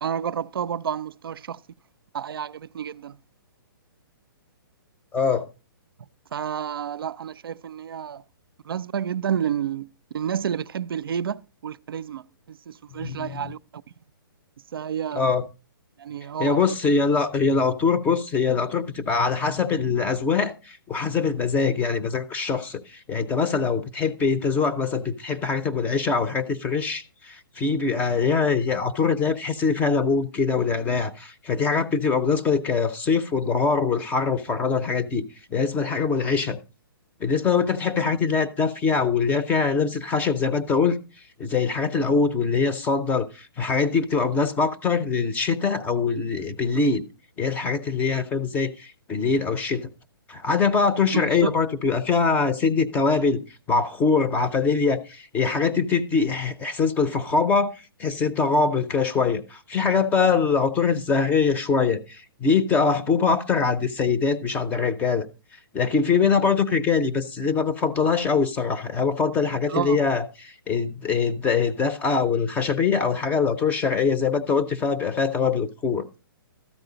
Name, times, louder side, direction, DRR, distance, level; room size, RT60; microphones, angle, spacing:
voice 1, 0.0-1.6 2.1-3.2 6.3-8.2 8.7-12.2 12.5-13.8 14.7-15.3 16.0-16.7 51.1-51.5 69.7-70.0, right 8 dB, 75° right, 0.4 m, -30 dB
voice 2, 5.1-5.4 13.0-13.3 15.2-15.4 16.4-35.2 35.5-36.6 37.2-41.0 41.4-47.0 47.4-49.9 50.3-53.4 53.7-57.7 58.0-65.3 65.7-70.3 70.7-76.1, left 5 dB, 15° left, 0.6 m, -23 dB
13.0 x 7.9 x 3.9 m
hypercardioid pair, 145°, 12 cm